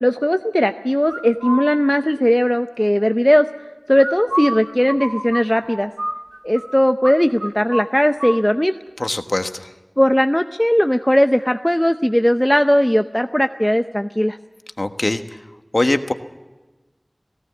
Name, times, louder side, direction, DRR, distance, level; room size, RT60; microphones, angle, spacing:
voice 1, 0.0-3.5 3.9-5.9 6.4-8.7 10.0-14.4, equal, 15° left, 7 dB, 0.7 m, -17 dB
sound 1, 1.1-1.7 4.0-6.7 7.0-7.2 7.4-8.4, right 1 dB, 45° right, 2.1 m, -27 dB
voice 2, 9.0-9.7 14.8-15.2 15.7-16.1, left 2 dB, 65° left, 7 dB, 1.3 m, -21 dB
18.0 x 17.0 x 8.4 m, 1.2 s
wide cardioid pair, 40°, 0 cm